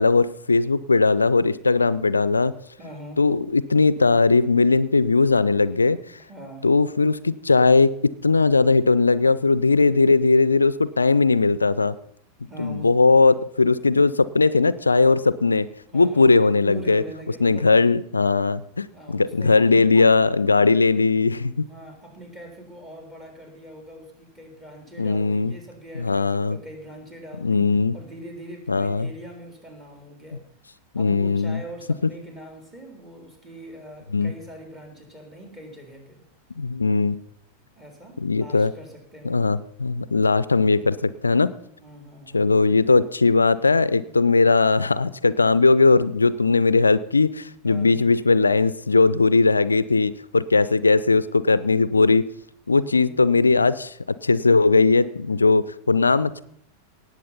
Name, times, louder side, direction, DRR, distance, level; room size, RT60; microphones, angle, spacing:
voice 1, 0.0-2.5 3.2-6.0 6.6-11.9 12.6-15.7 15.9-17.0 17.4-21.7 25.0-25.5 26.0-26.6 27.4-27.9 28.7-29.1 30.9-31.6 34.1-34.3 36.6-37.2 38.2-38.7 39.3-41.5 42.3-52.2 52.7-53.9 54.2-56.4, left 3 dB, 80° left, 18 dB, 0.4 m, -19 dB
voice 2, 2.8-3.2 6.3-6.7 12.5-13.2 15.9-17.7 18.9-20.1 21.7-30.4 30.9-36.2 37.8-39.5 41.8-42.8 47.6-48.1 52.7-53.2, right 1 dB, 15° right, 3 dB, 3.7 m, -42 dB
18.5 x 7.4 x 5.6 m, 0.69 s
figure-of-eight pair, 90°, 0 cm